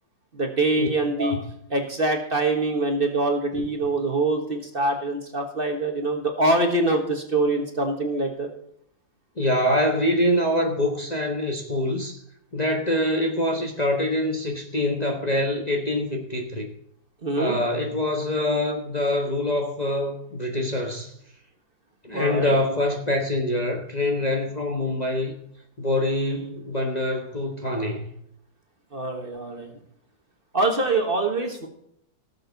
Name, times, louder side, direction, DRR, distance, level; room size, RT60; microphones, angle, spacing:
voice 1, 0.3-1.4 1.7-8.5 17.2-17.6 22.1-22.6 28.9-29.7 30.5-31.7, right 2 dB, 35° right, 3 dB, 1.5 m, -24 dB
voice 2, 9.4-12.2 12.5-16.7 17.4-21.1 22.0-25.3 25.8-28.0, left 1 dB, 25° left, 1 dB, 1.3 m, -25 dB
17.5 x 7.2 x 4.0 m, 0.73 s
omnidirectional pair, 1.7 m